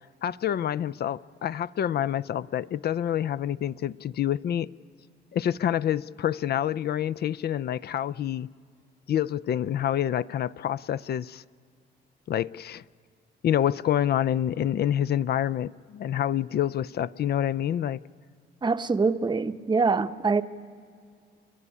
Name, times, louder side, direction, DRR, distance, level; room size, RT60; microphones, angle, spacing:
voice 1, 0.2-4.7 5.3-8.5 9.1-11.4 12.3-12.8 13.4-18.0, left 10 dB, 55° left, 0.5 m, -27 dB
voice 2, 18.6-20.4, right 4 dB, 20° right, 0.8 m, -24 dB
30.0 x 11.0 x 10.0 m
cardioid pair, 90°, 20 cm